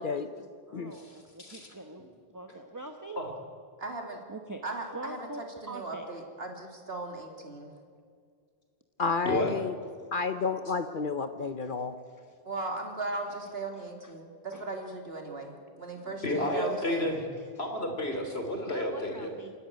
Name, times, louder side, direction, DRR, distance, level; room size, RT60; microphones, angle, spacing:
voice 1, 0.0-3.2 4.3-4.6 4.9-6.1 12.2-12.3 14.5-14.7 15.9-16.0 16.5-16.9 17.4-17.5 18.7-19.5, right 2 dB, 20° right, 5 dB, 1.1 m, -44 dB
voice 2, 0.9-1.7 3.2-3.3 9.2-9.5 16.2-17.2 17.6-19.3, left 1 dB, 80° left, 3 dB, 3.4 m, -31 dB
voice 3, 3.8-4.2 4.6-7.7 12.4-17.1, right 2 dB, 70° right, 3 dB, 2.9 m, -38 dB
voice 4, 9.0-9.7 10.1-11.9, left 4 dB, 55° left, 10 dB, 0.9 m, -30 dB
28.0 x 11.5 x 9.3 m, 2.1 s
omnidirectional pair, 1.1 m